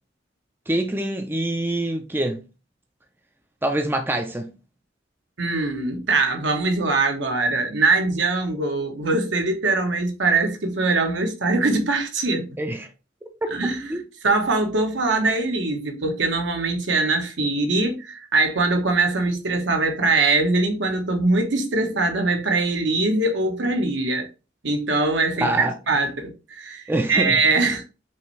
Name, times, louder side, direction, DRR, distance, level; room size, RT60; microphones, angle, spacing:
voice 1, 0.7-2.4 3.6-4.5 12.6-12.9 13.9-14.0 25.4-25.8 26.9-27.4, right 1 dB, 10° right, 0.5 m, -25 dB
voice 2, 5.4-12.6 13.5-13.9 14.2-24.3 24.6-27.8, right 3 dB, 65° right, 1.0 m, -22 dB
5.6 x 2.6 x 3.2 m
head